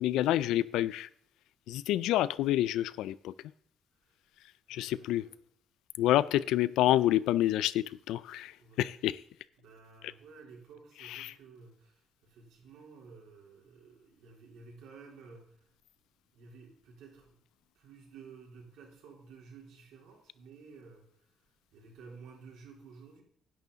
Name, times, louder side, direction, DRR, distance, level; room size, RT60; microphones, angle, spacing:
voice 1, 0.0-1.1 1.7-3.3 4.7-5.2 6.0-8.5 8.8-9.2 11.1-11.3, left 13 dB, 90° left, 18 dB, 0.4 m, -28 dB
voice 2, 4.7-5.4 6.1-6.5 8.6-9.0 9.6-15.7 16.3-17.4 17.8-21.4 21.7-23.2, right 5 dB, 75° right, -1 dB, 3.7 m, -53 dB
10.5 x 9.3 x 4.0 m, 0.63 s
cardioid pair, 175°, 0 cm